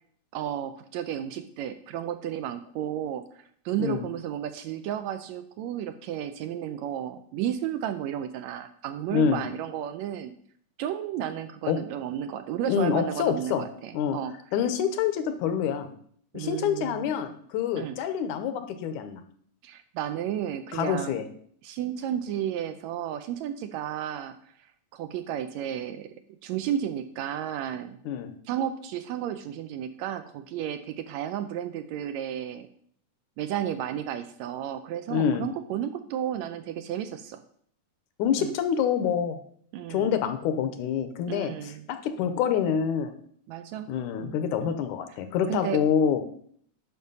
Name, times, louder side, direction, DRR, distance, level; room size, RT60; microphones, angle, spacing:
voice 1, 0.3-3.2 3.6-10.3 10.8-14.3 16.3-17.1 17.7-18.0 19.6-21.2 21.6-24.3 24.9-26.1 26.4-28.0 28.5-32.7 33.4-37.4 38.4-38.5 39.7-40.2 41.3-41.9 43.5-43.9 44.2-44.8 45.5-45.8, right 10 dB, 80° right, 9 dB, 1.7 m, -33 dB
voice 2, 9.1-9.4 11.7-11.8 12.7-13.6 13.9-14.2 14.5-15.9 16.3-19.2 20.7-21.2 28.1-28.3 35.1-35.5 38.2-39.4 39.9-43.1 43.9-46.2, left 8 dB, 80° left, 9 dB, 2.2 m, -26 dB
9.3 x 5.8 x 5.4 m, 0.63 s
omnidirectional pair, 3.5 m